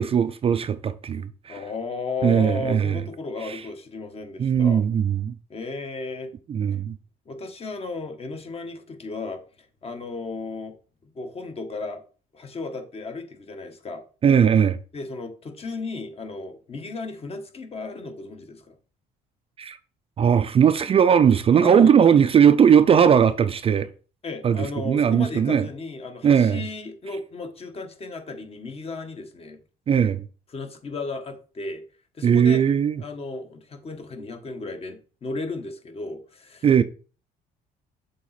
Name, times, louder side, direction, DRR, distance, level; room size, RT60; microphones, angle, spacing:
voice 1, 0.0-1.6 2.2-3.0 3.5-3.6 4.4-5.4 6.5-6.9 14.2-14.8 19.6-19.8 20.2-23.9 24.4-25.7 26.2-26.6 29.9-30.2 32.2-33.0 36.6-36.8, right 8 dB, 35° right, 0.4 m, -18 dB
voice 2, 1.5-4.8 5.5-6.3 7.3-9.4 9.8-10.7 11.0-12.0 12.3-14.0 14.9-18.7 21.6-22.1 24.2-29.6 30.5-31.8 32.1-32.6 33.0-36.7, left 3 dB, 35° left, 1.3 m, -34 dB
7.3 x 4.0 x 4.2 m
cardioid pair, 110°, 17 cm